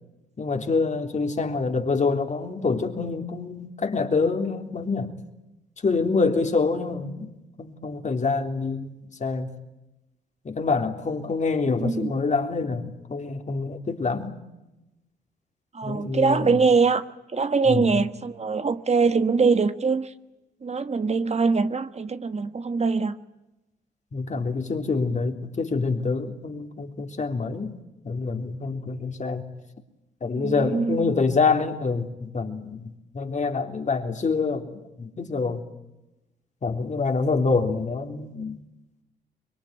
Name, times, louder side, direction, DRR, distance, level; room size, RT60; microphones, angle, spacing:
voice 1, 0.4-5.1 5.8-9.0 9.2-9.5 10.5-14.4 15.8-16.6 17.7-18.0 24.1-27.7 28.0-29.4 30.2-34.7 35.0-35.6 36.6-38.6, left 4 dB, 45° left, 3.5 m, -26 dB
voice 2, 11.8-12.1 15.7-17.0 17.3-20.1 20.6-23.2 30.3-31.1, right 4 dB, 40° right, 1.4 m, -23 dB
25.0 x 22.5 x 9.4 m
supercardioid pair, 60°, 17 cm